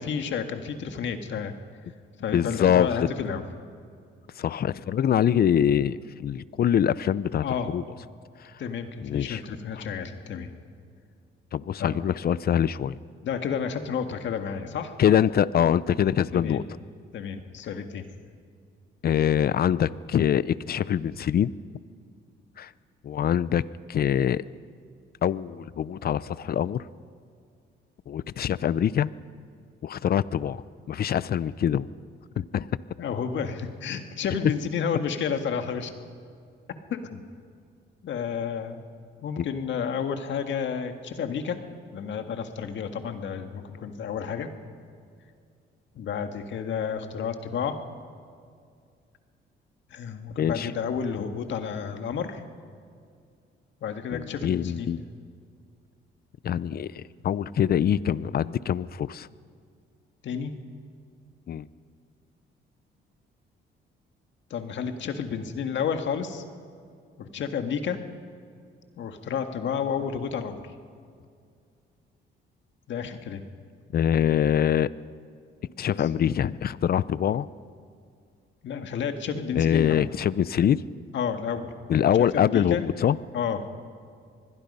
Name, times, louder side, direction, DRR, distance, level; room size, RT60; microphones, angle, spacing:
voice 1, 0.0-1.5 2.2-3.4 7.4-7.7 8.6-10.5 11.8-11.9 13.2-14.9 16.3-16.6 17.1-18.0 33.0-35.9 36.9-37.2 38.1-38.8 39.2-41.6 41.9-44.5 46.0-47.8 49.9-52.4 53.8-54.9 60.2-60.5 64.5-66.4 67.2-68.0 69.0-70.7 72.9-73.4 76.0-76.1 78.6-80.1 81.1-81.7 82.3-82.9 83.3-83.6, left 7 dB, 70° left, 7 dB, 1.8 m, -31 dB
voice 2, 2.3-2.9 4.4-7.8 9.0-9.4 9.7-9.8 11.5-13.0 15.0-16.6 19.0-21.5 22.6-22.7 23.0-23.6 23.9-24.4 25.2-26.8 28.1-29.1 29.8-31.9 32.4-32.7 39.4-39.5 50.4-50.7 54.1-55.0 56.4-59.3 61.5-61.7 73.9-74.9 75.8-77.5 79.6-80.8 81.9-83.2, left 9 dB, 50° left, 18 dB, 0.6 m, -24 dB
25.5 x 21.0 x 5.5 m, 2.2 s
cardioid pair, 90°, 20 cm